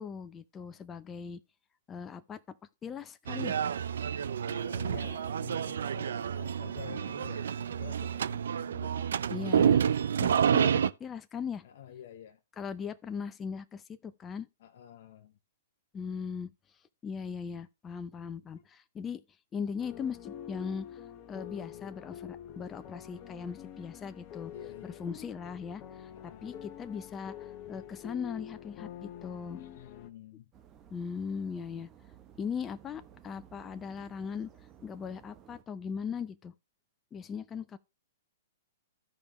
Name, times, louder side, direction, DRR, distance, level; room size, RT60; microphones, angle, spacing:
voice 1, 0.0-1.4 1.9-2.4 2.8-3.6 9.3-9.8 10.2-11.6 12.6-14.5 15.9-16.5 17.0-19.2 19.5-21.0 21.3-24.5 24.8-29.6 30.9-31.9 32.4-34.5 34.8-36.5 37.1-37.8, left 6 dB, 20° left, 0.6 m, -39 dB
sound 1, 3.3-10.9, right 8 dB, 70° right, 0.4 m, -29 dB
voice 2, 4.5-9.1 11.6-12.4 14.6-15.4 18.5-18.6 24.5-25.1 26.1-26.7 29.5-30.5, left 10 dB, 55° left, 0.8 m, -49 dB
sound 2, 19.8-30.1, left 10 dB, 35° left, 1.1 m, -46 dB
sound 3, 30.5-35.6, right 9 dB, 25° right, 1.1 m, -56 dB
14.0 x 5.2 x 3.1 m
hypercardioid pair, 120°, 0 cm